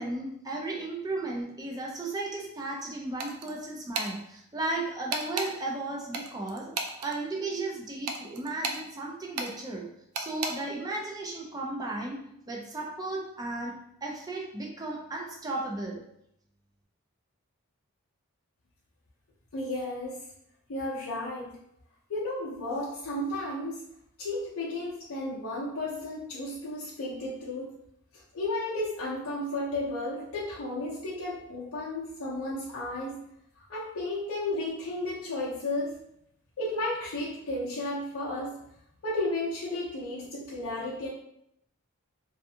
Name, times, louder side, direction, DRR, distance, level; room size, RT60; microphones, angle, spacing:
voice 1, 0.0-6.7 7.0-9.9 10.2-12.2 12.5-16.0, right 2 dB, 15° right, -2 dB, 0.3 m, -35 dB
sound 1, 3.2-3.5 3.9-4.1 5.1-5.5 6.1-7.2 8.1-8.8 9.4-9.5 10.1-10.5, right 4 dB, 85° right, 0.4 m, -33 dB
voice 2, 19.5-20.2 20.7-21.6 22.1-23.8 24.2-27.7 28.1-33.2 33.6-36.0 36.6-38.5 39.0-41.1, left 2 dB, 70° left, -7 dB, 0.5 m, -33 dB
2.5 x 2.3 x 2.6 m, 0.76 s
head